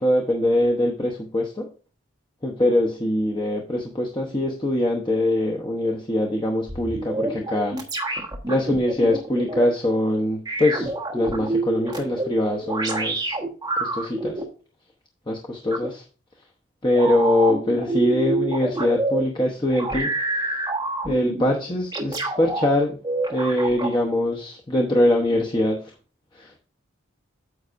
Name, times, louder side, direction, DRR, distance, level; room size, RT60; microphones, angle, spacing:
voice 1, 0.0-1.7 2.4-7.8 8.5-13.4 13.8-14.4 15.3-16.0 16.8-20.1 21.0-23.0 23.3-25.9 26.3-26.6, left 1 dB, 20° left, 0 dB, 0.8 m, -23 dB
sound 1, 6.7-9.6 10.5-14.4 15.7-15.9 16.9-19.2 19.7-21.4 21.9-22.7 23.0-24.0, right 2 dB, 20° right, 1.3 m, -27 dB
9.4 x 7.9 x 2.5 m, 0.36 s
head